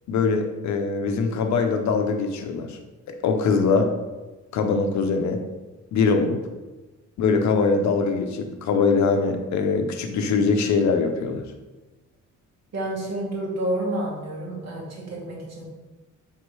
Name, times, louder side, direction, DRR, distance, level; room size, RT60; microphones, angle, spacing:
voice 1, 0.1-2.8 3.1-3.9 4.5-5.4 5.9-6.4 7.2-11.4, left 4 dB, 70° left, 5 dB, 0.6 m, -22 dB
voice 2, 12.7-15.7, right 1 dB, 60° right, -2 dB, 1.4 m, -29 dB
3.5 x 3.0 x 4.6 m, 1.2 s
cardioid pair, 90°, 30 cm